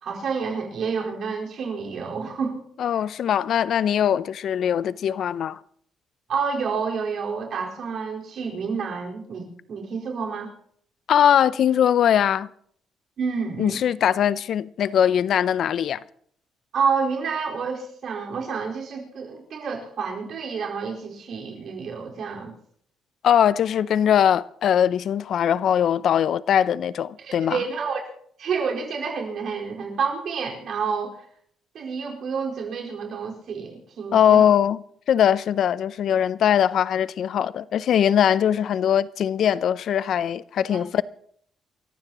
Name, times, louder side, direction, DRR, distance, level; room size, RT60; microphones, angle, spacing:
voice 1, 0.0-2.6 6.3-10.5 13.2-13.8 16.7-22.5 27.2-28.0 28.4-31.2 31.7-34.5 40.7-41.0, right 5 dB, 65° right, 4.8 m, -29 dB
voice 2, 2.8-5.6 11.1-12.5 13.6-16.0 23.2-27.6 34.1-34.8 35.1-41.0, left 9 dB, 65° left, 0.6 m, -21 dB
28.5 x 14.5 x 3.0 m
cardioid pair, 90°, 0 cm